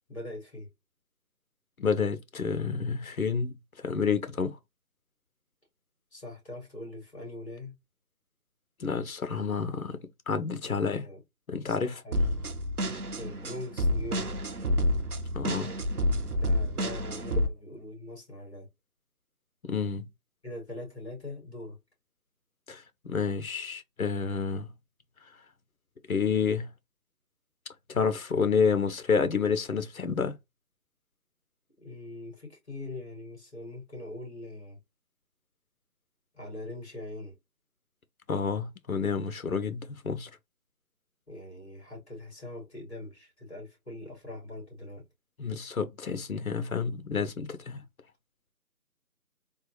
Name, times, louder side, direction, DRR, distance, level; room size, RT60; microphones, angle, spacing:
voice 1, 0.1-0.7 6.1-7.8 10.6-11.2 11.5-12.4 13.2-14.3 15.5-15.9 16.2-18.7 20.4-21.8 31.8-34.8 36.3-37.4 41.3-45.0 47.8-47.9, left 1 dB, 40° left, 2.2 m, -42 dB
voice 2, 1.8-3.6 3.8-4.6 8.8-10.0 10.3-11.1 11.5-12.0 15.3-15.7 19.6-20.1 22.7-24.7 26.1-26.7 27.9-30.3 38.3-40.3 45.4-47.8, left 5 dB, 60° left, 0.7 m, -29 dB
sound 1, 12.1-17.5, equal, 65° right, 0.9 m, -29 dB
3.6 x 2.3 x 2.9 m
figure-of-eight pair, 175°, 48 cm